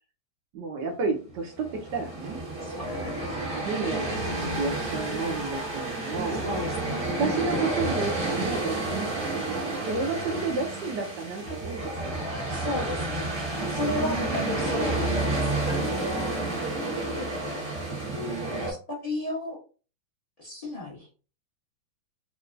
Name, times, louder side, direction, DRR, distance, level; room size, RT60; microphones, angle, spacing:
voice 1, 0.5-2.4 3.0-6.4 7.1-12.2 13.7-14.1 16.4-16.8, right 4 dB, 75° right, 1 dB, 1.0 m, -32 dB
sound 1, 1.4-18.7, right 2 dB, 40° right, 1.5 m, -30 dB
sound 2, 2.8-5.9, left 5 dB, 85° left, 1.6 m, -41 dB
voice 2, 6.4-7.6 12.5-13.3 13.7-16.3 16.9-17.8 18.7-19.6 20.4-21.1, left 1 dB, 70° left, -4 dB, 0.3 m, -34 dB
4.2 x 2.2 x 2.5 m, 0.36 s
omnidirectional pair, 2.4 m